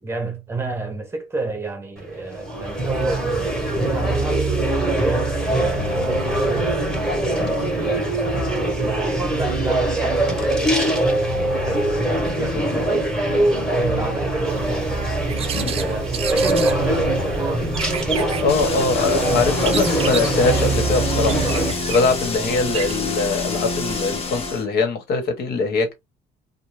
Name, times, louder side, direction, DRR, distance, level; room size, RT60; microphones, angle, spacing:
voice 1, 0.0-4.5 5.0-6.8 7.2-8.2 8.5-11.0 11.5-11.9 12.3-13.1 13.6-14.9 15.8-17.8 22.4-22.6, right 3 dB, 15° right, 0.8 m, -30 dB
sound 1, 2.0-21.7, right 1 dB, 5° left, 1.1 m, -22 dB
voice 2, 12.5-13.0 15.5-15.7 18.2-21.4 21.9-25.9, left 4 dB, 70° left, 1.2 m, -22 dB
sound 2, 14.5-23.0, right 6 dB, 35° right, 0.5 m, -31 dB
sound 3, 18.5-24.6, left 3 dB, 35° left, 0.7 m, -27 dB
2.6 x 2.2 x 3.1 m
cardioid pair, 110°, 17 cm